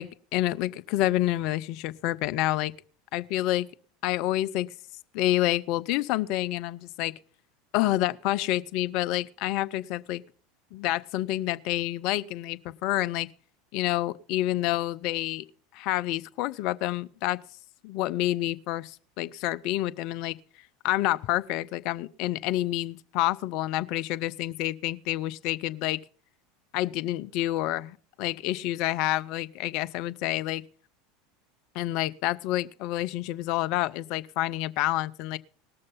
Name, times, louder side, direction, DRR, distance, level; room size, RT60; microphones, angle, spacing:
voice 1, 0.0-2.7 3.1-3.7 4.0-4.7 5.1-7.1 7.7-10.2 10.7-13.3 13.7-15.4 15.7-17.4 17.8-20.4 20.8-26.0 26.7-30.6 31.7-35.4, left 15 dB, 55° left, 0.5 m, -28 dB
18.5 x 6.6 x 5.4 m
hypercardioid pair, 80°, 0 cm